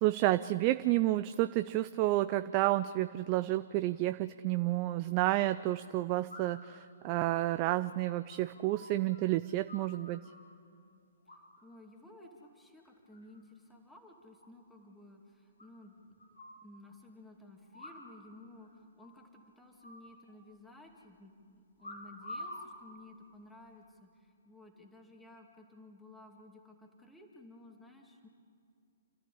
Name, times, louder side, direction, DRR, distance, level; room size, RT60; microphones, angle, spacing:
voice 1, 0.0-10.2, right 16 dB, 35° right, 12 dB, 0.5 m, -30 dB
sound 1, 4.5-4.6 6.3-6.7 7.1-9.2 9.4-10.5 11.3-11.8 12.1-12.5 12.8-13.4 13.7-13.8 14.0-14.1 14.4-14.5 14.8-14.9 15.6-16.6 17.7-18.3 18.6-18.7 19.0-19.3 19.8-20.7 21.8-22.7 23.4-23.8, left 1 dB, 85° left, 6.4 m, -49 dB
voice 2, 11.3-16.1 16.6-28.3, left 1 dB, 5° left, 1 dB, 2.4 m, -55 dB
29.5 x 13.5 x 8.5 m, 2.4 s
figure-of-eight pair, 120°, 0 cm